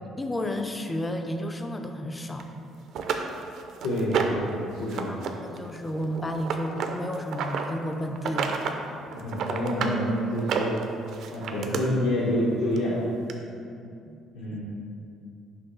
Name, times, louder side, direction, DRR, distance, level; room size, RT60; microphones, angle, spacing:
voice 1, 0.2-2.5 4.9-5.2 5.4-8.6 13.6-14.2 14.5-14.6, equal, 10° left, 5 dB, 0.4 m, -32 dB
sound 1, 2.4-2.5 2.9-4.5 4.9-5.3 5.6-7.6 8.1-8.8 9.1-10.0 10.4-11.8 12.8-12.9 13.3-13.4, right 6 dB, 55° right, 0.4 m, -30 dB
voice 2, 3.8-5.2 9.1-10.8 11.3-13.0 14.3-14.6, equal, 85° left, -8 dB, 1.1 m, -27 dB
5.9 x 3.1 x 5.4 m, 2.4 s
cardioid pair, 160°, 0 cm